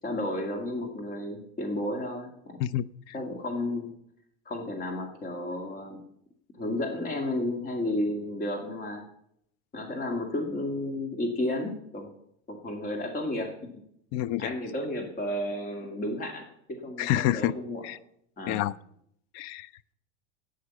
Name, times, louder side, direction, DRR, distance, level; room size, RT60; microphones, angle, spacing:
voice 1, 0.0-2.6 3.1-3.9 4.5-6.0 6.6-9.0 9.7-12.1 12.5-13.5 14.4-17.9 18.4-18.7, left 1 dB, 25° left, 2.3 m, -32 dB
voice 2, 2.6-3.1 14.1-14.5 17.0-17.6 17.8-18.0 18.5-18.7 19.3-19.9, left 13 dB, 55° left, 0.6 m, -28 dB
11.5 x 9.4 x 7.1 m
supercardioid pair, 120°, 32 cm